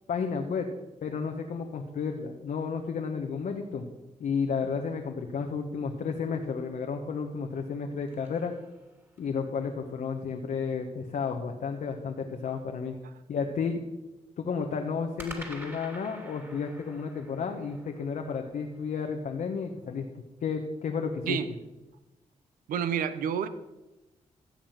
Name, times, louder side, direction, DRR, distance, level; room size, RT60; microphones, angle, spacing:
voice 1, 0.1-0.7 1.0-3.9 4.2-8.5 9.2-12.9 13.3-13.8 14.4-20.1 20.4-21.4, left 5 dB, 75° left, 3 dB, 1.2 m, -32 dB
sound 1, 7.5-9.4 15.2-19.5, right 1 dB, 15° right, 3.0 m, -48 dB
voice 2, 22.7-23.5, right 8 dB, 90° right, 12 dB, 0.8 m, -29 dB
14.5 x 7.2 x 5.9 m, 1.0 s
supercardioid pair, 55°, 14 cm